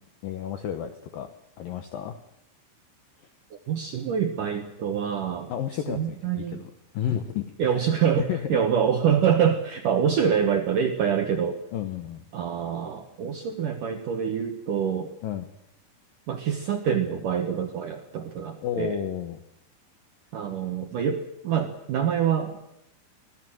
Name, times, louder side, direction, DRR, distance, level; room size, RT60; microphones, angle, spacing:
voice 1, 0.2-1.3 1.6-2.2 5.5-6.6 6.9-7.9 8.2-8.6 11.7-12.3 15.2-15.5 18.6-19.4, left 9 dB, 80° left, 8 dB, 2.0 m, -31 dB
voice 2, 3.5-5.5 5.9-6.6 7.6-11.6 12.3-15.1 16.3-19.0 20.3-22.6, right 8 dB, 70° right, 5 dB, 2.0 m, -26 dB
24.0 x 17.5 x 7.7 m, 0.79 s
omnidirectional pair, 5.6 m